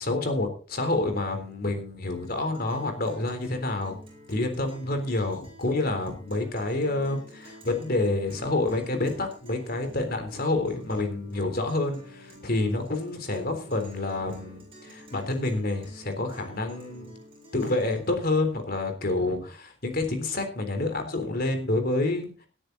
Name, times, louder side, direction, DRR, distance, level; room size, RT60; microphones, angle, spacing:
voice 1, 0.0-4.0 4.3-17.2 17.5-22.5, left 2 dB, 45° left, 6 dB, 3.6 m, -28 dB
Guitar, 2.1-18.1, left 1 dB, 25° right, 7.5 m, -50 dB
19.0 x 10.0 x 4.0 m, 0.37 s
head